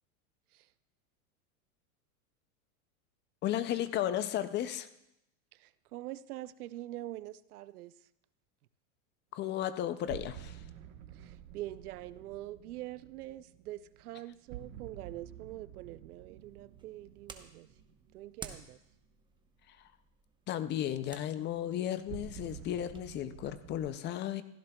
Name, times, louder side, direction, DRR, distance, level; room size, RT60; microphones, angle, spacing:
voice 1, 3.4-4.9 9.3-10.6 19.7-19.8 20.5-24.4, left 11 dB, 25° left, 13 dB, 0.4 m, -34 dB
voice 2, 5.5-8.1 11.1-17.7 18.1-18.8, right 15 dB, 85° right, 16 dB, 0.6 m, -44 dB
sound 1, 10.1-19.0 22.1-23.9, right 10 dB, 55° right, 1.3 m, -50 dB
sound 2, 16.4-23.1, right 4 dB, 10° right, 0.9 m, -54 dB
17.0 x 15.5 x 2.3 m, 0.85 s
supercardioid pair, 120°, 43 cm